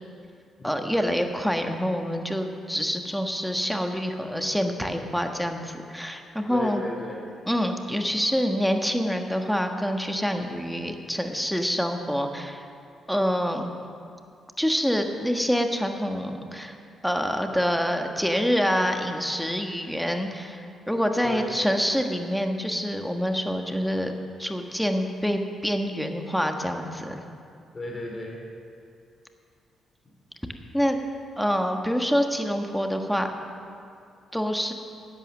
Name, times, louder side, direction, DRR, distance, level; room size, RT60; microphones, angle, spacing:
voice 1, 0.6-6.8 7.5-12.6 13.1-13.7 14.6-16.8 17.0-27.2 30.7-31.0 31.4-33.3 34.3-34.7, equal, ahead, 4 dB, 1.4 m, -26 dB
voice 2, 6.5-7.2 21.2-21.6 27.7-28.4, left 2 dB, 35° left, -1 dB, 3.4 m, -34 dB
11.5 x 8.9 x 6.6 m, 2.4 s
supercardioid pair, 50°, 0 cm